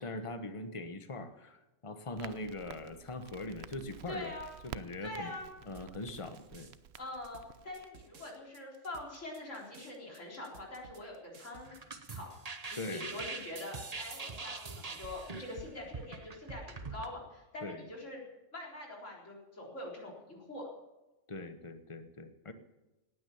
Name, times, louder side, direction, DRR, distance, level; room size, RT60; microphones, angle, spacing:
voice 1, 0.0-4.3 4.6-5.3 5.7-6.7 12.8-13.1 17.6-17.9 21.3-22.5, left 2 dB, 25° left, 9 dB, 1.2 m, -41 dB
Crackle, 2.2-7.9, right 9 dB, 60° right, 0.9 m, -51 dB
voice 2, 4.1-4.5 5.0-5.5 7.0-11.8 12.1-18.2 18.5-20.7, left 1 dB, 75° left, -2 dB, 4.4 m, -44 dB
sound 1, 5.7-12.1, right 6 dB, 85° right, 1.7 m, -58 dB
sound 2, 11.6-17.1, right 3 dB, 35° right, 1.1 m, -43 dB
18.0 x 9.4 x 7.0 m, 1.0 s
omnidirectional pair, 1.3 m